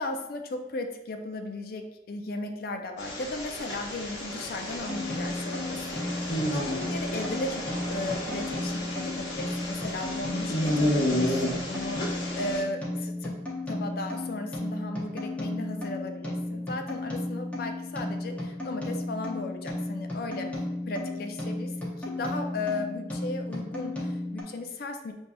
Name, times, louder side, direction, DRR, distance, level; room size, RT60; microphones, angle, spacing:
voice 1, 0.0-13.3 13.7-20.5 20.9-25.1, left 2 dB, 50° left, 5 dB, 0.4 m, -36 dB
sound 1, 3.0-12.6, left 1 dB, 65° left, 1.0 m, -32 dB
sound 2, 4.9-24.4, left 2 dB, 10° left, 0.8 m, -34 dB
6.0 x 2.7 x 2.2 m, 0.92 s
head